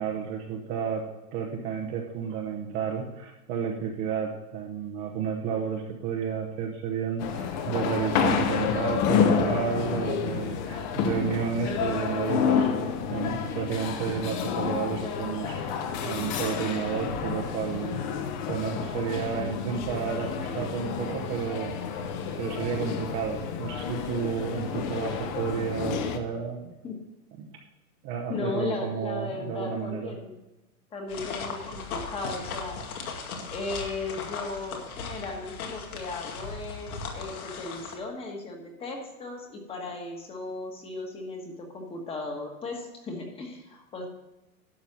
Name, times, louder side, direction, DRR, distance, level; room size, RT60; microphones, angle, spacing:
voice 1, 0.0-18.0 18.5-21.8 22.3-26.7 28.0-30.1, right 7 dB, 25° right, 0 dB, 0.8 m, -31 dB
sound 1, 7.2-26.2, left 7 dB, 30° left, 0.9 m, -29 dB
voice 2, 28.3-30.3 30.9-32.8 33.5-44.1, left 3 dB, 15° left, 2 dB, 1.4 m, -36 dB
sound 2, 31.1-37.9, left 5 dB, 75° left, 2.3 m, -37 dB
11.5 x 6.7 x 6.0 m, 1.0 s
supercardioid pair, 160°, 44 cm